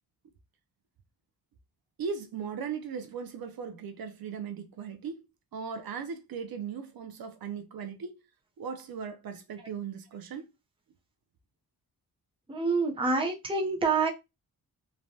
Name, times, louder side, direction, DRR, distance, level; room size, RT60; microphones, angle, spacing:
voice 1, 2.0-5.3 5.5-8.2 8.6-10.5, right 6 dB, 65° right, 0.5 m, -38 dB
voice 2, 12.5-14.1, right 4 dB, 15° right, 0.6 m, -27 dB
3.2 x 2.1 x 2.7 m
wide cardioid pair, 125°, 39 cm